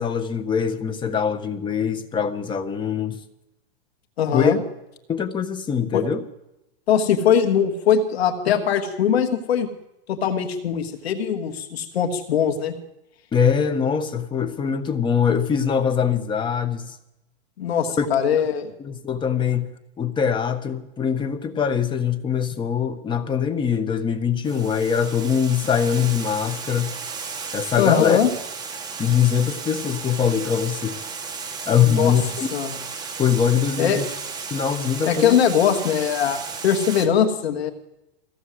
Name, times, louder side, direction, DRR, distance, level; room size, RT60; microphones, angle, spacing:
voice 1, 0.0-3.2 4.3-4.5 5.1-6.2 13.3-17.0 18.0-18.1 18.8-19.7 20.0-27.0 27.5-28.2 29.0-31.0 31.7-32.5 33.2-34.1 34.5-35.4, left 7 dB, 15° left, 1.5 m, -22 dB
voice 2, 4.2-4.6 5.9-6.0 6.9-9.7 10.1-12.7 17.6-18.7 27.8-28.3 31.8-32.1 32.5-32.8 33.8-34.0 35.0-37.7, left 8 dB, 80° left, 3.0 m, -21 dB
Water, 24.4-37.1, right 5 dB, 15° right, 2.0 m, -34 dB
24.0 x 16.5 x 8.1 m
supercardioid pair, 150°, 31 cm